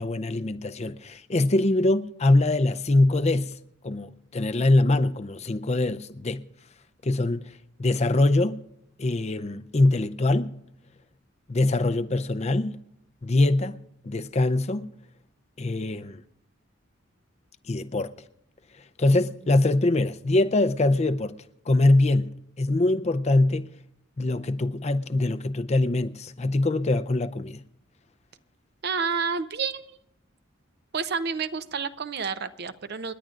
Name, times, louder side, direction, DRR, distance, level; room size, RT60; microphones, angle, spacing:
voice 1, 0.0-3.6 3.8-6.4 7.0-7.5 7.8-8.6 9.0-10.6 11.5-12.8 13.2-13.8 14.0-14.9 15.6-16.2 17.7-18.1 19.0-21.4 21.7-23.7 24.2-27.6, left 2 dB, 35° left, 0.6 m, -23 dB
voice 2, 28.8-30.0 30.9-33.1, right 5 dB, 55° right, 0.7 m, -29 dB
30.0 x 10.0 x 2.5 m
head